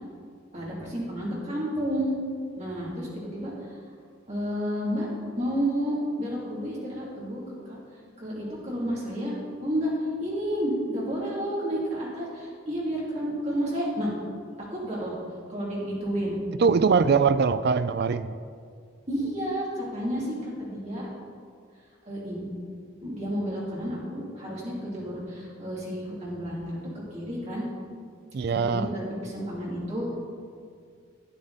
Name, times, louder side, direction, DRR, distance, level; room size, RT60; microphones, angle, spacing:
voice 1, 0.5-2.1 2.6-3.7 4.3-5.1 5.4-7.4 7.7-7.8 8.2-9.4 9.6-9.9 10.2-14.1 14.7-15.2 15.5-16.4 19.1-21.1 22.1-22.5 23.0-26.8 27.1-27.6 28.7-30.1, equal, 35° right, -6 dB, 2.8 m, -31 dB
voice 2, 16.6-18.3 28.3-28.9, right 5 dB, 50° right, 13 dB, 0.3 m, -22 dB
12.0 x 9.1 x 4.1 m, 2.2 s
head